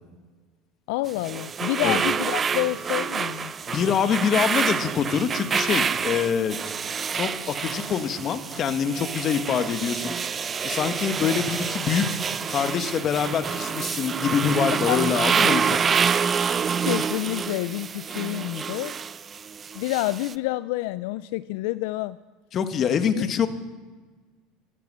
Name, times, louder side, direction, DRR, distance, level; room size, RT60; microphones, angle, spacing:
voice 1, 0.9-3.5 14.7-15.0 16.9-18.9 19.7-22.2 23.1-23.3, left 18 dB, 75° left, 16 dB, 0.4 m, -28 dB
sound 1, 1.1-20.3, right 6 dB, 30° right, 0.6 m, -27 dB
voice 2, 3.7-6.6 7.1-10.1 10.6-12.2 12.5-15.8 22.5-23.5, left 7 dB, 40° left, 9 dB, 1.4 m, -25 dB
13.5 x 13.5 x 7.5 m, 1.4 s
supercardioid pair, 105°, 0 cm